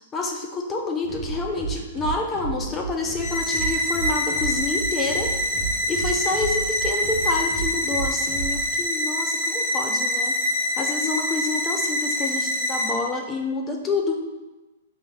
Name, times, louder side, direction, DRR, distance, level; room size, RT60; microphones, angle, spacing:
voice 1, 0.1-5.3 5.9-10.4 10.8-14.2, left 3 dB, 20° left, 2 dB, 0.6 m, -28 dB
sound 1, 1.0-8.7, right 5 dB, 45° right, 1.1 m, -32 dB
sound 2, 3.2-12.9, left 1 dB, 35° left, 0.9 m, -25 dB
5.3 x 3.3 x 2.3 m, 1.1 s
hypercardioid pair, 135°, 0 cm